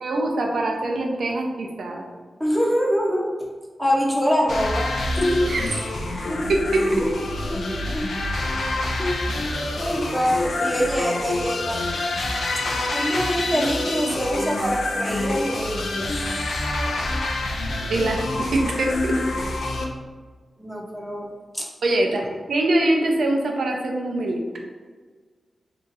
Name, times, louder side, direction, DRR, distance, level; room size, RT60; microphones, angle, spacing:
voice 1, 0.0-2.0 5.5-5.8 6.5-7.0 17.9-19.2 21.8-22.2 22.5-24.4, right 2 dB, 80° right, 1 dB, 0.5 m, -23 dB
voice 2, 2.4-3.3 3.8-4.9 5.2-5.7 6.3-6.5 7.0-7.1 7.5-8.2 9.0-9.4 9.7-11.8 12.9-15.8 20.6-21.3 21.5-21.7, equal, 5° right, -2 dB, 0.6 m, -24 dB
sound 1, 4.5-19.9, left 2 dB, 90° left, 0.4 m, -27 dB
2.8 x 2.3 x 4.0 m, 1.5 s
wide cardioid pair, 115°, 0 cm